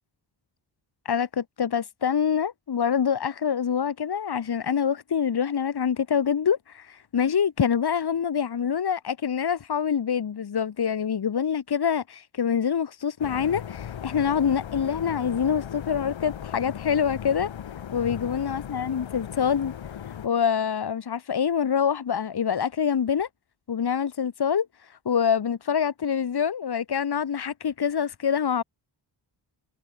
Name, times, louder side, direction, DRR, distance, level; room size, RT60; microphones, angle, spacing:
voice 1, 1.0-17.5 17.9-19.7 20.2-23.3 23.7-24.7 25.1-28.6, left 7 dB, 55° left, 2.5 m, -25 dB
sound 1, 13.2-20.3, left 9 dB, 80° left, 3.8 m, -37 dB
cardioid pair, 95°, 45 cm